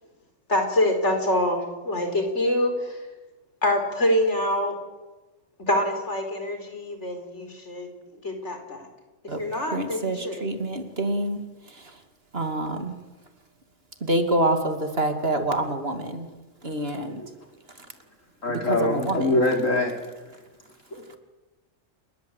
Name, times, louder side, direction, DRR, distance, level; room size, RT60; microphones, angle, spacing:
voice 1, 0.5-3.0 3.6-4.8 5.6-7.9 8.2-8.9 9.4-10.5, left 1 dB, 65° left, 5 dB, 4.9 m, -25 dB
voice 2, 9.7-11.4 12.3-13.0 14.0-16.3 16.6-17.2 18.5-19.4, right 1 dB, 50° right, 6 dB, 2.8 m, -26 dB
voice 3, 18.4-20.1 20.9-21.2, left 2 dB, 85° left, 2 dB, 4.8 m, -24 dB
29.0 x 21.0 x 8.3 m, 1.2 s
omnidirectional pair, 1.3 m